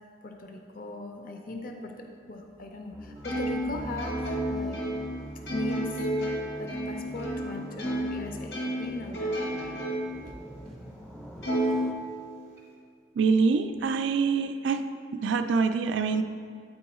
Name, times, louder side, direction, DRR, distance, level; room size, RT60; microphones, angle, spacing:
voice 1, 0.2-1.9 2.3-4.2 4.5-4.7 5.5-6.0 6.6-9.4, left 2 dB, 50° left, 3 dB, 0.6 m, -38 dB
sound 1, 2.9-11.9, right 1 dB, ahead, 0.5 m, -42 dB
Plucked string instrument, 3.2-8.2 8.5-10.2 10.7-10.8 11.4-12.6, right 1 dB, 85° left, 1.8 m, -31 dB
voice 2, 13.2-14.8 15.2-16.2, right 5 dB, 85° right, 8 dB, 0.3 m, -25 dB
8.9 x 4.6 x 4.2 m, 2.2 s
head